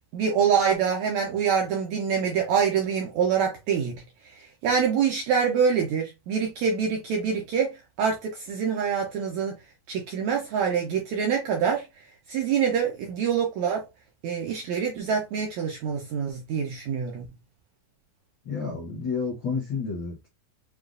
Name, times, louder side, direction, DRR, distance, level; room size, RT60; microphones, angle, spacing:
voice 1, 0.1-3.9 4.3-9.5 9.9-11.9 12.3-13.8 14.2-17.2, right 7 dB, 75° right, 1.7 m, -25 dB
voice 2, 18.4-20.3, left 5 dB, 50° left, 1.4 m, -30 dB
6.8 x 2.4 x 2.5 m
omnidirectional pair, 4.0 m